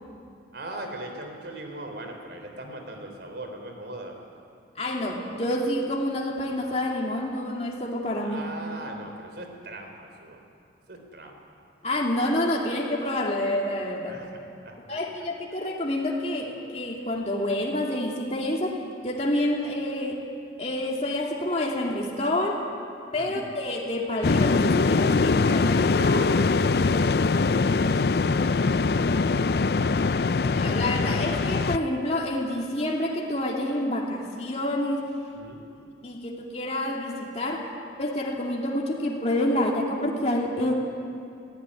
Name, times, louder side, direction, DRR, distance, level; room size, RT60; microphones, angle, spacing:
voice 1, 0.5-4.2 8.2-10.4 10.9-11.4 14.1-14.3 14.6-15.0 23.2-23.5 25.9-29.6 35.4-35.6, right 1 dB, 65° right, 3 dB, 3.6 m, -40 dB
voice 2, 4.8-8.4 11.8-14.2 14.9-18.8 19.0-20.2 20.6-22.6 23.1-26.0 30.4-35.0 36.0-37.7 38.0-40.7, left 1 dB, 35° left, -1 dB, 2.6 m, -28 dB
sound 1, 24.2-31.8, left 4 dB, 55° left, 0.5 m, -22 dB
21.5 x 16.5 x 9.9 m, 2.5 s
head